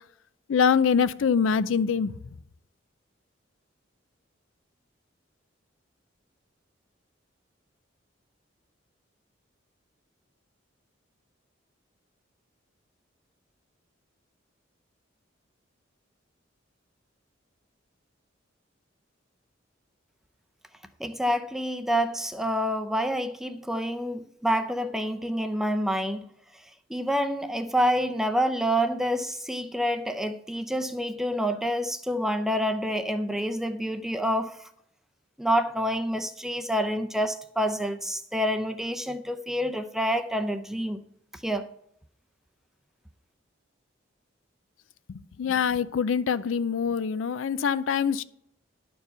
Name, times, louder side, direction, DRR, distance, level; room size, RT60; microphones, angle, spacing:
voice 1, 0.5-2.1 45.1-48.2, left 6 dB, 85° left, 0.4 m, -24 dB
voice 2, 21.0-26.2 26.9-34.6 35.4-41.0 41.4-41.7, equal, ahead, 0.5 m, -27 dB
11.0 x 4.7 x 6.7 m
head